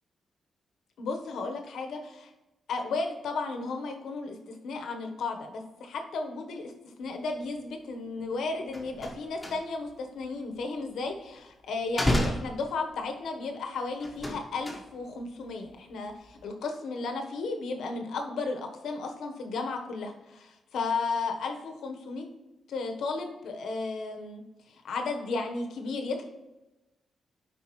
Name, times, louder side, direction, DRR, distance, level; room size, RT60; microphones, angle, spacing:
voice 1, 1.0-2.3 2.7-6.7 7.0-22.3 22.7-24.4 24.7-26.2, left 3 dB, 80° left, 4 dB, 1.1 m, -34 dB
sound 1, 8.2-8.3 8.6-10.0 10.2-11.4 11.8-13.2 14.0-15.2 15.5-15.9 16.2-16.4, left 1 dB, 10° left, 1.2 m, -32 dB
12.0 x 5.0 x 3.1 m, 1.0 s
cardioid pair, 125°, 0 cm